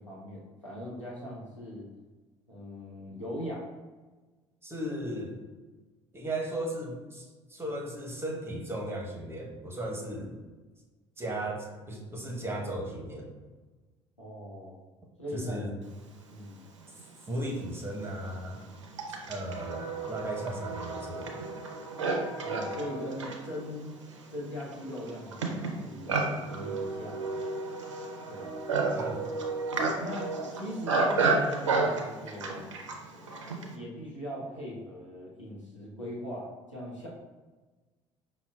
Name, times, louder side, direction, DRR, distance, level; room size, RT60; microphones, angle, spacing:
voice 1, 0.0-1.9 2.5-3.6 14.2-14.8 15.2-15.6 16.3-16.7 22.4-23.9 24.3-27.2 28.3-28.5 30.0-32.7 33.6-37.1, equal, 90° left, -5 dB, 0.7 m, -40 dB
voice 2, 4.6-5.4 6.1-10.4 11.2-13.3 15.3-15.8 17.3-18.6 19.1-21.3 28.9-29.3, right 1 dB, 15° right, -1 dB, 0.8 m, -36 dB
Livestock farm animals working animals, 17.0-17.1 17.8-33.8, right 3 dB, 75° right, 0.4 m, -32 dB
5.4 x 2.1 x 2.2 m, 1.3 s
figure-of-eight pair, 55°, 15 cm